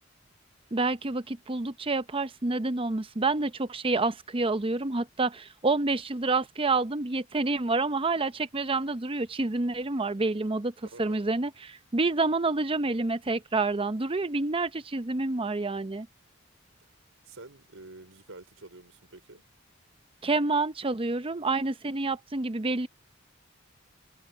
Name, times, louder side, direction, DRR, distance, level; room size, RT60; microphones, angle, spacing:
voice 1, 0.7-10.7 11.0-16.1 20.2-22.9, right 3 dB, 25° right, 0.7 m, -28 dB
voice 2, 10.8-11.2 17.2-19.4, right 2 dB, 85° right, 4.7 m, -48 dB
head